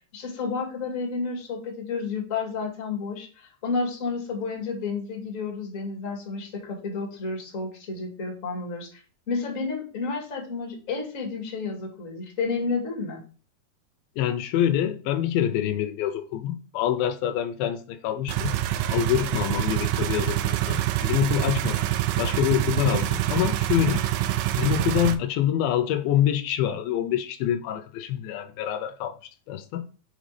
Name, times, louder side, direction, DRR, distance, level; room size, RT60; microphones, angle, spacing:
voice 1, 0.1-9.0 9.3-13.2, left 4 dB, 30° left, 1.5 m, -31 dB
voice 2, 14.2-18.6 18.9-21.8 22.2-24.0 24.6-29.2 29.5-29.9, left 11 dB, 90° left, 2.5 m, -26 dB
sound 1, 18.3-25.2, right 13 dB, 85° right, 2.3 m, -26 dB
5.8 x 5.1 x 3.2 m
omnidirectional pair, 4.1 m